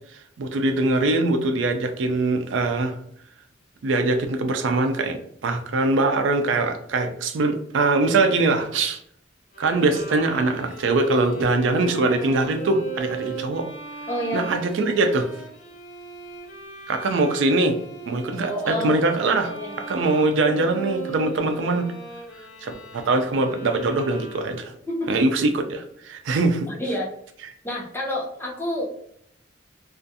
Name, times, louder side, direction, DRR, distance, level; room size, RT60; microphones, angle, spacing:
voice 1, 0.4-3.0 3.8-9.0 9.6-13.7 14.3-15.3 16.9-17.8 18.0-19.5 19.9-21.9 22.6-24.7 25.1-26.7, right 2 dB, 80° right, 6 dB, 0.4 m, -22 dB
Bowed string instrument, 9.5-24.8, right 3 dB, 80° left, 0.9 m, -39 dB
voice 2, 14.1-14.5 18.3-18.9 19.4-19.8 24.9-25.1 26.7-27.1 27.6-28.9, equal, 10° left, -3 dB, 0.6 m, -28 dB
2.4 x 2.3 x 2.6 m, 0.68 s
head